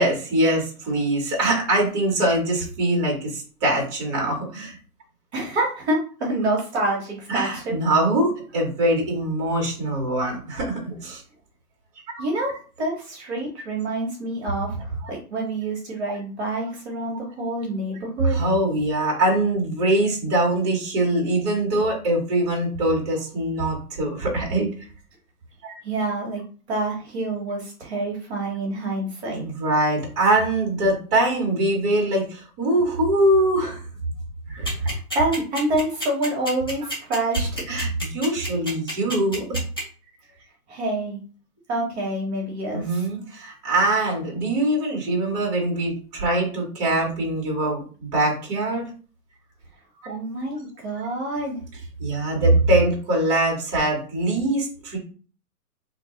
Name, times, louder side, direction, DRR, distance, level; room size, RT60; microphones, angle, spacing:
voice 1, 0.0-4.8 7.3-11.2 18.2-24.7 25.6-25.8 29.3-33.8 34.5-34.9 37.7-39.6 42.7-48.9 50.0-50.2 52.0-55.0, right 1 dB, 25° right, -1 dB, 1.3 m, -23 dB
voice 2, 5.3-7.7 12.2-18.4 25.8-26.4 26.7-29.4 34.7-37.6 40.7-41.2 41.7-43.0 50.0-51.6, right 2 dB, 45° right, -1 dB, 1.3 m, -27 dB
sound 1, 34.6-39.8, equal, 15° left, 0.4 m, -29 dB
2.9 x 2.6 x 3.9 m, 0.40 s
hypercardioid pair, 160°, 46 cm